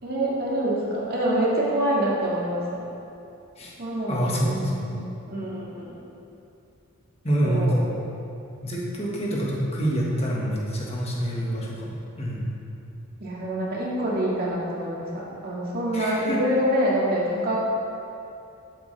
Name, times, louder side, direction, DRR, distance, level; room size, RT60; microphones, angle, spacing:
voice 1, 0.0-2.8 3.8-4.8 5.3-6.0 7.4-7.8 13.2-17.6, right 1 dB, 45° right, -5 dB, 2.0 m, -26 dB
voice 2, 4.1-5.0 7.2-7.9 8.6-12.5 15.9-16.4, equal, 30° left, -4 dB, 1.7 m, -26 dB
12.0 x 8.2 x 3.4 m, 2.7 s
head